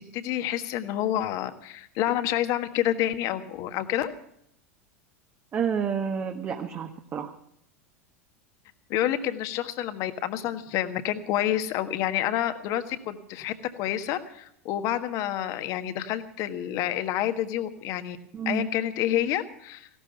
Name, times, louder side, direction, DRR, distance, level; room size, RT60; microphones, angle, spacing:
voice 1, 0.0-4.1 8.9-18.2 18.4-19.9, left 12 dB, 45° left, 10 dB, 1.5 m, -28 dB
voice 2, 5.5-7.3 18.3-18.7, right 7 dB, 30° right, 4 dB, 1.4 m, -29 dB
16.5 x 12.5 x 6.9 m, 0.73 s
figure-of-eight pair, 85°, 8 cm